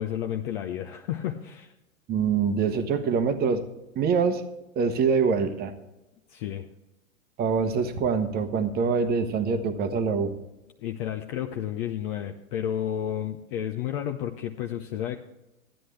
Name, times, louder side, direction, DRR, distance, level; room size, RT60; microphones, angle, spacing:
voice 1, 0.0-1.7 6.3-6.7 10.8-15.2, left 10 dB, 40° left, 5 dB, 0.7 m, -31 dB
voice 2, 2.1-3.6 3.9-4.4 4.8-5.7 7.4-10.3, right 5 dB, 25° right, 9 dB, 1.0 m, -24 dB
14.0 x 9.9 x 3.3 m, 0.94 s
hypercardioid pair, 115°, 41 cm